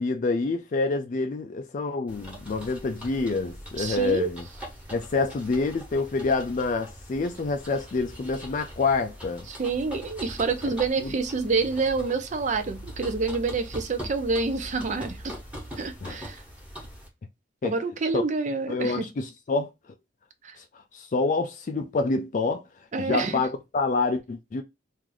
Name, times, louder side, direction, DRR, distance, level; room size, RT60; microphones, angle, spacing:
voice 1, 0.0-4.4 4.9-9.5 11.0-11.1 16.0-16.2 17.6-17.7 18.1-18.2 18.7-19.7 20.9-22.6 23.0-24.6, left 3 dB, 45° left, 0.4 m, -27 dB
sound 1, 2.1-17.1, equal, 5° right, 1.3 m, -42 dB
voice 2, 3.8-4.3 9.5-15.4 15.8-16.4 17.6-19.1 20.4-20.6 22.9-23.4, right 4 dB, 45° right, 0.5 m, -27 dB
3.0 x 2.5 x 3.8 m
head